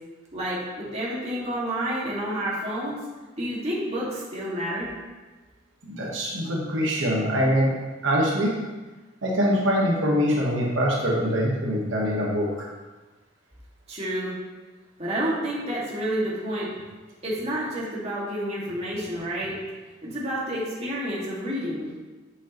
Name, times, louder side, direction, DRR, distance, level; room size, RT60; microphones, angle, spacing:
voice 1, 0.3-3.0 3.4-4.9 13.9-14.3 15.0-16.7 17.2-19.5 20.0-21.9, right 1 dB, 35° right, -6 dB, 1.9 m, -29 dB
voice 2, 5.8-7.7 8.0-8.5 9.2-12.5, equal, 85° right, -3 dB, 1.2 m, -23 dB
7.7 x 6.4 x 3.0 m, 1.3 s
head